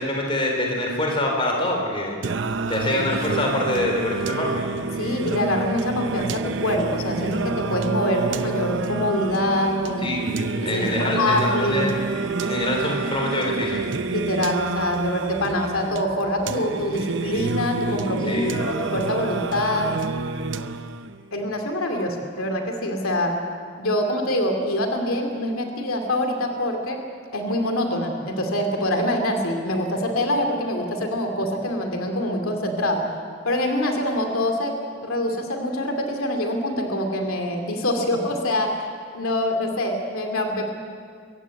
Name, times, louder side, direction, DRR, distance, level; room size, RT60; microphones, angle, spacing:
voice 1, 0.0-2.2 2.7-4.6 10.0-12.0 12.4-13.8 18.3-18.5, left 1 dB, 25° left, 0 dB, 4.0 m, -25 dB
Singing, 2.2-21.2, right 3 dB, 60° right, 0.7 m, -28 dB
voice 2, 5.0-10.2 10.6-11.9 14.1-19.9 21.3-23.4 23.8-27.0 27.3-33.0 33.4-34.7 35.0-38.7 39.1-40.7, left 1 dB, 90° left, 4 dB, 2.6 m, -25 dB
24.0 x 15.5 x 8.3 m, 2.1 s
head